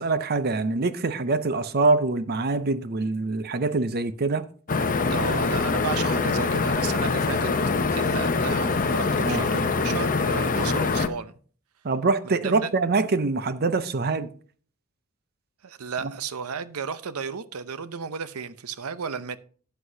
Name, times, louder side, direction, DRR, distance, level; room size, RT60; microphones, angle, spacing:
voice 1, 0.0-4.5 9.2-9.4 11.8-14.3, right 3 dB, 45° right, 0.6 m, -24 dB
sound 1, 4.7-11.1, left 4 dB, 40° left, 0.7 m, -24 dB
voice 2, 5.1-7.5 7.9-11.3 12.2-12.7 15.6-19.4, right 6 dB, 85° right, 0.7 m, -33 dB
12.5 x 8.1 x 2.7 m
head